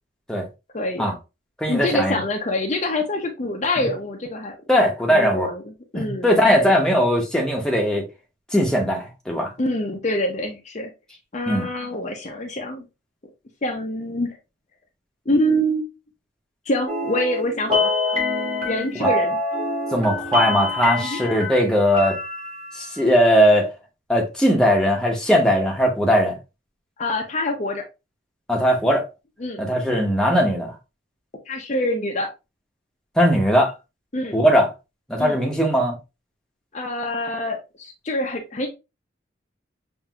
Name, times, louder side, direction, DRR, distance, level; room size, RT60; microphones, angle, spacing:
voice 1, 0.7-1.1 1.7-4.6 5.1-5.6 5.9-6.8 9.6-10.9 11.3-12.9 13.6-14.4 15.3-15.9 16.7-17.9 18.7-19.4 21.0-21.2 27.0-27.8 29.4-29.6 31.5-32.3 34.1-34.4 35.2-35.4 36.7-38.7, left 1 dB, 35° left, 0.5 m, -25 dB
voice 2, 1.6-2.2 3.8-3.9 4.7-5.5 5.9-8.1 8.5-9.5 11.5-11.7 19.0-19.1 19.9-22.2 22.7-23.7 24.1-26.4 28.5-29.1 29.6-30.7 33.2-33.7 34.3-34.7 35.1-35.9, equal, 5° left, 0.8 m, -19 dB
sound 1, 16.9-22.9, left 2 dB, 30° right, 1.6 m, -25 dB
5.7 x 2.6 x 2.3 m
head